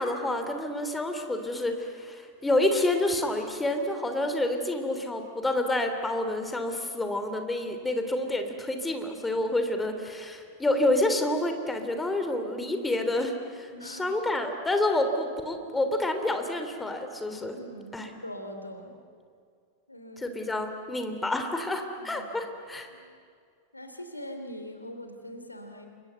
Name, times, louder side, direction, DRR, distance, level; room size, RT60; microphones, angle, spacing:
voice 1, 0.0-17.6 17.9-18.1 20.2-22.9, left 1 dB, 10° left, 6 dB, 3.2 m, -28 dB
voice 2, 13.7-14.2 17.5-18.9 19.9-20.3 22.0-22.3 22.9-23.1 23.7-25.9, equal, 85° left, 6 dB, 3.2 m, -42 dB
29.5 x 25.0 x 8.1 m, 2.2 s
figure-of-eight pair, 90°, 0 cm